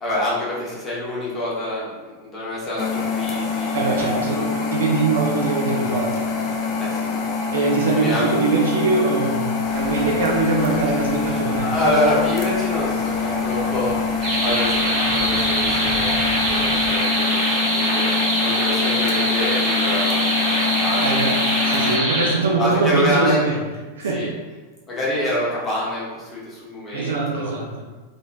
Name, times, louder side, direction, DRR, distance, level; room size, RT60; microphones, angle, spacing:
voice 1, 0.0-4.5 6.8-7.1 7.9-8.3 10.7-10.9 11.3-14.8 15.1-22.1 22.6-23.4 24.1-24.3 24.9-27.5, left 1 dB, 20° left, -7 dB, 1.0 m, -27 dB
sound 1, 2.8-22.0, left 5 dB, 35° left, 0.4 m, -25 dB
voice 2, 3.7-6.1 7.5-9.5 9.7-11.7 21.0-23.5 24.0-24.2 26.9-27.7, right 3 dB, 65° right, -1 dB, 0.5 m, -22 dB
sound 2, 9.6-16.9, equal, 5° right, 0.7 m, -37 dB
sound 3, 14.2-22.3, right 1 dB, 40° right, 1.2 m, -22 dB
2.9 x 2.5 x 2.3 m, 1.3 s
figure-of-eight pair, 90°, 0 cm